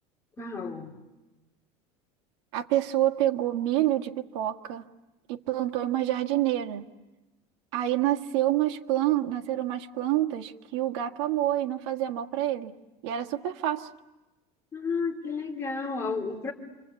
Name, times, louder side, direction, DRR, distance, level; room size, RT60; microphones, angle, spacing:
voice 1, 0.4-1.0 14.7-16.5, left 4 dB, 20° left, 3.1 m, -32 dB
voice 2, 2.5-4.8 5.3-6.8 7.7-12.7 13.0-13.9, right 13 dB, 80° right, 1.7 m, -27 dB
29.0 x 24.5 x 8.3 m
cardioid pair, 170°, 15 cm